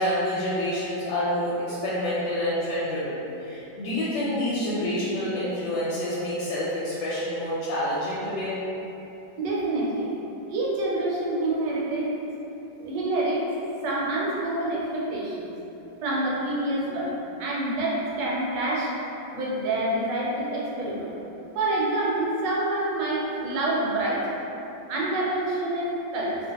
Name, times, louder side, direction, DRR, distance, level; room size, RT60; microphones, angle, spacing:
voice 1, 0.0-8.6, left 1 dB, 90° left, -9 dB, 1.3 m, -28 dB
voice 2, 9.4-10.1 10.5-12.1 12.8-13.5 13.8-15.5 16.0-17.1 17.4-18.9 19.3-21.1 21.5-24.2 24.9-26.4, right 2 dB, 75° right, -5 dB, 1.2 m, -27 dB
2.8 x 2.5 x 2.8 m, 3.0 s
omnidirectional pair, 2.0 m